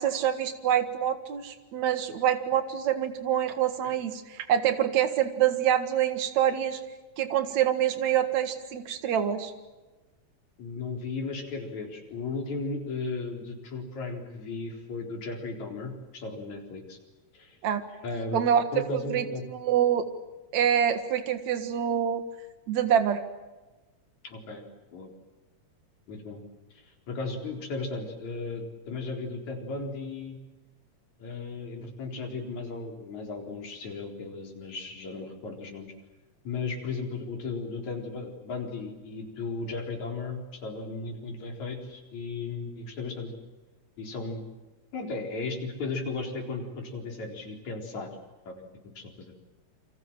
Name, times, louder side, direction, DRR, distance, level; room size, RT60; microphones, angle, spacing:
voice 1, 0.0-6.8 7.2-9.5 17.6-17.8 18.3-18.6 18.9-20.1 20.5-22.2 22.7-23.2, right 9 dB, 70° right, 9 dB, 3.0 m, -26 dB
voice 2, 10.6-17.0 17.3-17.6 18.0-18.4 18.7-19.4 24.2-24.6 24.9-25.1 26.1-26.4 27.1-30.4 31.2-35.9 36.5-43.3 44.0-44.4 44.9-48.1 48.5-48.6 49.0-49.3, left 3 dB, 75° left, 2 dB, 5.5 m, -35 dB
29.0 x 25.0 x 7.6 m, 1.1 s
omnidirectional pair, 3.3 m